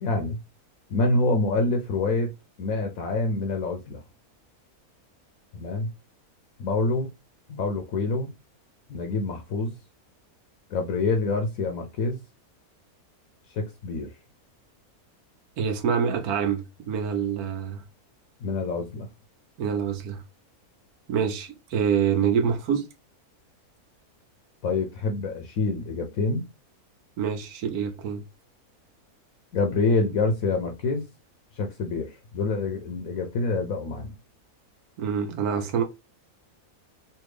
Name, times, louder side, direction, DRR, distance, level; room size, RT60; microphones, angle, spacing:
voice 1, 0.0-0.4 0.9-2.3 2.6-4.0 5.5-5.9 6.6-7.1 7.5-8.3 8.9-9.7 10.7-12.2 13.5-14.1 18.4-19.1 24.6-26.4 29.5-31.1 31.5-34.1, left 3 dB, 70° left, 1.1 m, -26 dB
voice 2, 15.6-17.8 19.6-20.2 21.1-22.9 27.2-28.2 35.0-35.8, right 7 dB, 80° right, 1.2 m, -26 dB
3.3 x 2.7 x 3.1 m
omnidirectional pair, 1.6 m